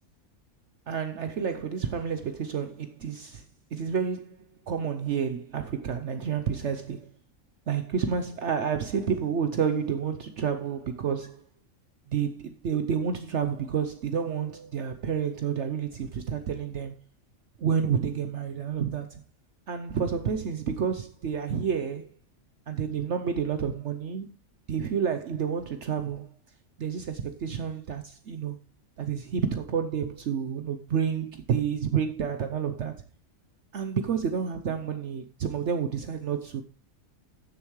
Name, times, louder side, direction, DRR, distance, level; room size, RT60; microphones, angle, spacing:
voice 1, 0.9-3.5 3.7-4.4 4.7-7.1 7.7-11.4 12.1-17.0 17.6-19.2 19.7-22.1 22.7-24.3 24.7-26.3 26.8-28.6 29.0-32.9 33.7-36.6, right 7 dB, 60° right, 1.0 m, -29 dB
15.5 x 6.9 x 3.1 m
omnidirectional pair, 1.4 m